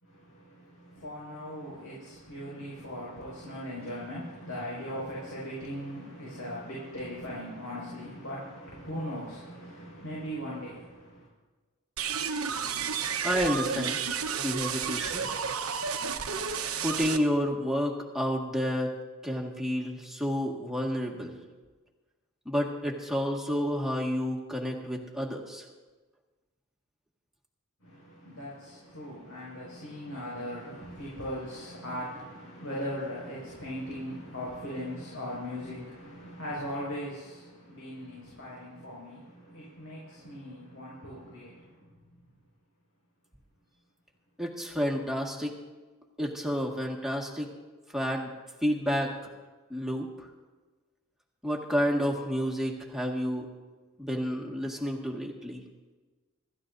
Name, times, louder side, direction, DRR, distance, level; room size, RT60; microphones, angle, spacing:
voice 1, 0.0-11.3 27.8-42.0, equal, 75° left, -6 dB, 5.5 m, -39 dB
sound 1, 12.0-17.2, right 6 dB, 85° right, 1.0 m, -31 dB
voice 2, 13.2-14.0 14.4-15.2 16.8-18.9 19.2-21.4 22.5-25.7 44.4-45.5 46.2-47.5 47.9-48.3 48.6-49.1 49.7-50.3 51.4-53.5 54.0-55.6, equal, ahead, -1 dB, 1.8 m, -30 dB
27.0 x 13.5 x 2.7 m, 1.3 s
head